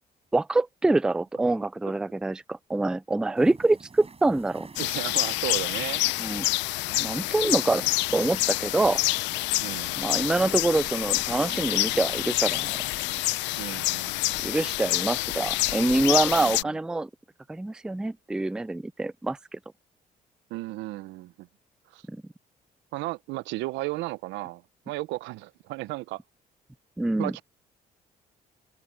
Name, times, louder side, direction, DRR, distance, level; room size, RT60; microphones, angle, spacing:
voice 1, 0.3-4.7 6.2-6.5 7.0-7.8 8.1-9.0 10.0-12.8 14.4-17.1 17.5-19.6 22.1-22.2 27.0-27.3, right 2 dB, 5° right, 0.3 m, -25 dB
sound 1, 3.4-13.4, right 4 dB, 35° right, 5.9 m, -48 dB
sound 2, 4.8-16.6, left 20 dB, 80° left, 0.6 m, -27 dB
voice 2, 4.8-6.0 9.6-9.9 13.6-14.4 16.4-16.7 20.5-21.5 21.9-22.0 22.9-26.2 27.2-27.4, right 19 dB, 80° right, 0.8 m, -34 dB
supercardioid pair, 60°, 18 cm